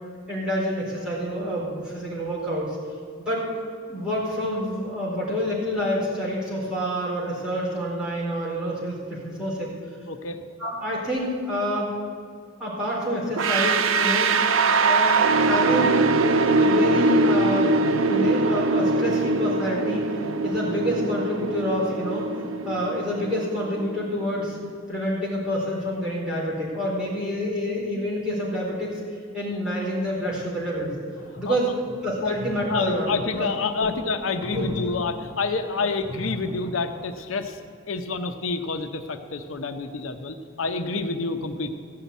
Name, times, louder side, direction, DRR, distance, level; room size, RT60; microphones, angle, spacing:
voice 1, 0.3-2.8 3.2-3.4 3.9-9.7 10.6-12.0 12.6-14.4 14.8-16.1 16.6-22.3 22.6-24.6 24.9-29.0 29.3-30.9 31.4-31.7 32.0-33.1 33.4-33.5 33.8-33.9 34.5-34.7, equal, 5° right, -7 dB, 4.0 m, -28 dB
voice 2, 10.1-10.4 31.4-31.6 32.2-32.3 32.7-37.6 37.9-41.7, left 4 dB, 85° left, 7 dB, 0.8 m, -28 dB
sound 1, 13.4-24.2, right 3 dB, 85° right, 0.6 m, -22 dB
sound 2, 31.2-37.2, left 1 dB, 30° left, 2.8 m, -39 dB
15.0 x 5.8 x 9.3 m, 2.4 s
head